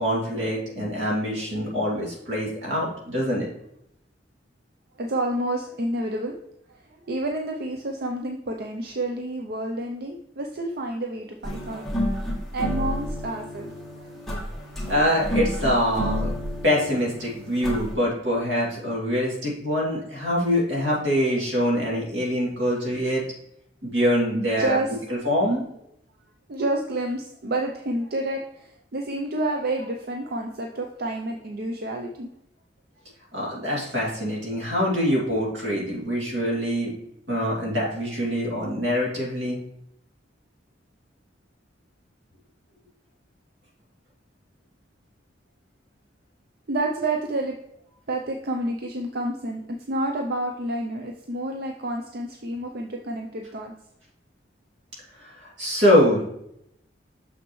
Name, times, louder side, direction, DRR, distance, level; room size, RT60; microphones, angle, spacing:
voice 1, 0.0-3.5 14.9-16.3 16.6-23.2 23.8-24.8 25.1-25.6 33.3-36.9 37.3-39.6 55.2-56.2, equal, 80° right, -4 dB, 2.7 m, -24 dB
voice 2, 5.0-6.4 7.1-11.8 12.5-14.1 14.5-14.6 24.3-25.3 26.5-32.3 46.7-47.6 48.1-49.6 49.9-53.7, right 1 dB, 60° right, 3 dB, 0.6 m, -29 dB
sound 1, 11.4-17.9, left 1 dB, ahead, 1.3 m, -30 dB
6.5 x 6.0 x 3.1 m, 0.78 s
head